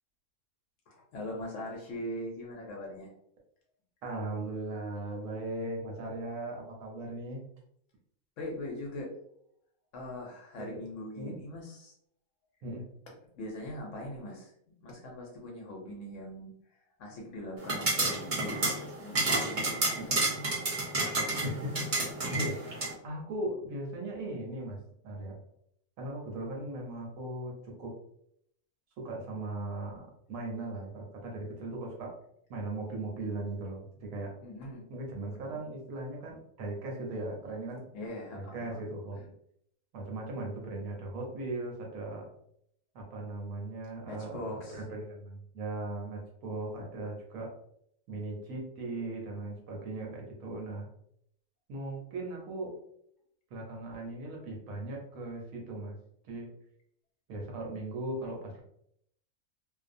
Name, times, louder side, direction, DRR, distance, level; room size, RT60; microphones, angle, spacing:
voice 1, 0.9-3.1 8.4-9.1 9.9-11.9 13.4-14.5 14.8-16.5 17.0-20.5 34.4-34.9 35.4-35.6 37.9-38.8 39.1-39.2 44.0-44.8, left 1 dB, 65° left, -1 dB, 0.9 m, -41 dB
voice 2, 4.0-7.4 10.6-10.8 11.2-11.4 12.6-12.8 20.0-20.1 21.4-25.4 26.0-27.9 29.0-32.1 32.5-34.3 34.9-37.8 38.3-39.2 39.9-42.3 42.9-47.5 48.1-50.9 51.7-52.7 53.5-56.0 56.2-56.5 57.3-58.6, right 2 dB, 70° right, -1 dB, 1.0 m, -38 dB
sound 1, 17.6-22.9, right 2 dB, 40° right, 0.8 m, -30 dB
2.5 x 2.1 x 2.5 m, 0.71 s
omnidirectional pair, 1.6 m